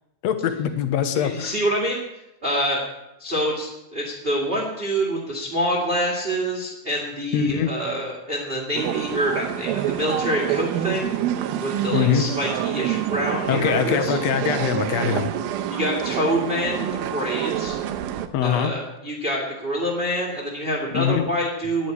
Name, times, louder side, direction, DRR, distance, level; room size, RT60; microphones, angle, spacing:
voice 1, 0.2-1.5 7.3-7.7 11.9-12.3 13.5-15.3 18.3-18.7 20.9-21.2, left 8 dB, 65° left, 8 dB, 1.8 m, -23 dB
voice 2, 1.1-2.0 2.4-2.8 3.2-11.2 11.6-14.2 15.7-17.8 18.4-21.9, equal, 20° right, -3 dB, 1.7 m, -26 dB
sound 1, 8.7-18.3, right 10 dB, 85° right, 2.6 m, -27 dB
11.0 x 9.7 x 8.3 m, 0.90 s
omnidirectional pair, 4.3 m